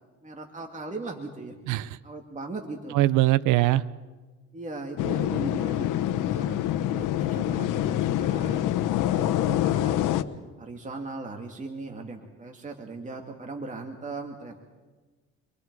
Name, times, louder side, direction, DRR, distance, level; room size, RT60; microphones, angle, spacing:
voice 1, 0.2-1.6 2.0-3.0 3.6-3.7 4.5-10.0 10.6-14.7, right 3 dB, 25° right, 2 dB, 2.4 m, -38 dB
voice 2, 1.7-2.0 2.9-3.8, right 16 dB, 75° right, 16 dB, 0.7 m, -21 dB
sound 1, 5.0-10.2, left 12 dB, 75° left, 1.0 m, -26 dB
30.0 x 23.5 x 4.8 m, 1.3 s
cardioid pair, 95°, 31 cm